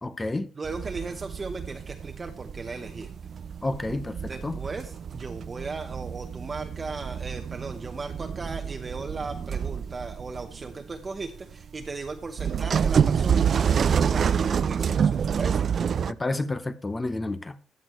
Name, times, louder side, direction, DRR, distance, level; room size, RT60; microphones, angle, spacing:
voice 1, 0.0-0.5 3.6-4.6 16.1-17.6, left 2 dB, 20° left, 0.7 m, -30 dB
voice 2, 0.5-3.1 4.3-15.7, right 3 dB, 30° right, 0.9 m, -37 dB
sound 1, 0.6-16.1, right 7 dB, 50° right, 0.4 m, -28 dB
14.5 x 6.2 x 3.1 m
cardioid pair, 85°, 0 cm